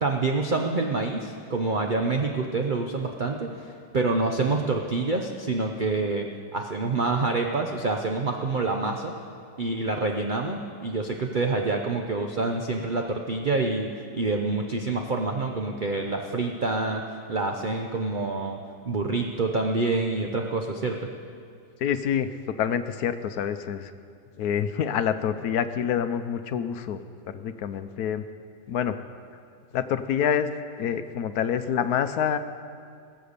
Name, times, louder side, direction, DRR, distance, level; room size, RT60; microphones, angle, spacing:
voice 1, 0.0-6.3 6.5-9.1 9.6-17.0 17.3-18.6 18.9-21.1, right 3 dB, 45° right, 2 dB, 0.6 m, -27 dB
voice 2, 21.8-22.3 22.6-23.9 24.4-27.0 27.3-28.2 28.7-29.0 29.7-30.5 30.8-32.4, left 8 dB, 70° left, 11 dB, 1.1 m, -27 dB
20.5 x 7.9 x 6.6 m, 2.3 s
omnidirectional pair, 1.8 m